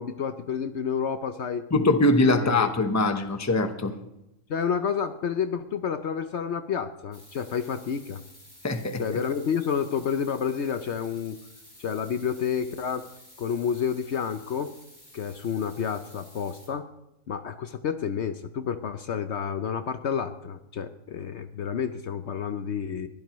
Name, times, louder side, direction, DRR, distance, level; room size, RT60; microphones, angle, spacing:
voice 1, 0.0-1.7 2.4-2.7 4.5-8.2 9.0-11.4 11.8-13.1 13.4-14.7 15.1-16.9 17.3-23.1, left 7 dB, 60° left, 9 dB, 0.9 m, -30 dB
voice 2, 1.7-3.9 8.6-9.2, left 2 dB, 15° left, 7 dB, 0.9 m, -22 dB
sound 1, 7.1-16.7, left 1 dB, 35° left, 4.9 m, -52 dB
22.0 x 15.5 x 3.1 m, 0.90 s
omnidirectional pair, 1.4 m